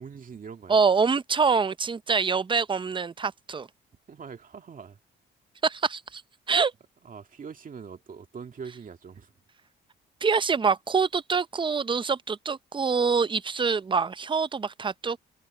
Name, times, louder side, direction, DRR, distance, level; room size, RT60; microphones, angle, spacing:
voice 1, 0.0-0.8 4.1-5.0 7.0-9.3, right 6 dB, 45° right, 2.2 m, -42 dB
voice 2, 0.7-3.7 5.6-6.2 6.5-6.7 10.2-15.2, right 5 dB, 25° right, 0.6 m, -25 dB
cardioid pair, 90°, 20 cm